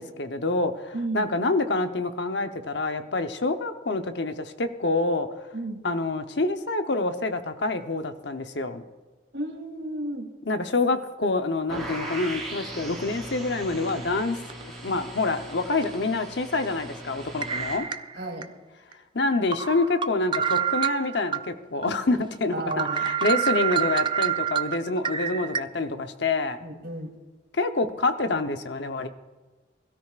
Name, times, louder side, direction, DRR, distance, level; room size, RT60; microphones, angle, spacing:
voice 1, 0.0-5.3 5.8-8.8 10.5-17.9 19.1-26.6 27.6-29.1, left 3 dB, 70° left, 7 dB, 0.9 m, -27 dB
voice 2, 0.9-1.3 5.5-5.8 9.3-10.3 18.1-18.4 22.5-23.1 26.6-27.1, right 1 dB, 65° right, 0 dB, 3.0 m, -32 dB
sound 1, 11.7-17.8, right 1 dB, ahead, 3.5 m, -38 dB
sound 2, 13.9-14.0 14.5-14.6 15.8-16.0 17.4-18.5 18.9-19.0 19.5-21.4 21.8-21.9 22.3-22.4 22.7-25.6, right 9 dB, 25° right, 0.4 m, -27 dB
22.0 x 13.0 x 2.5 m, 1.3 s
head